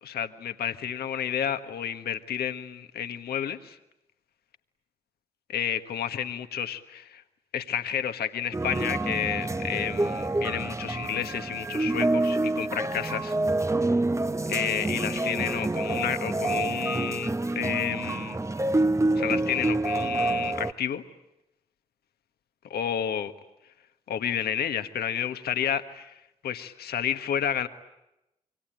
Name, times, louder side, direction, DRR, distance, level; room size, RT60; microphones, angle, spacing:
voice 1, 0.0-3.8 5.5-7.2 7.5-13.3 14.5-18.4 19.2-21.0 22.7-23.3 24.1-27.7, left 9 dB, 80° left, 9 dB, 1.5 m, -31 dB
sound 1, 8.5-20.7, right 2 dB, 20° right, 0.9 m, -27 dB
27.5 x 24.0 x 9.0 m, 0.91 s
supercardioid pair, 40°, 16 cm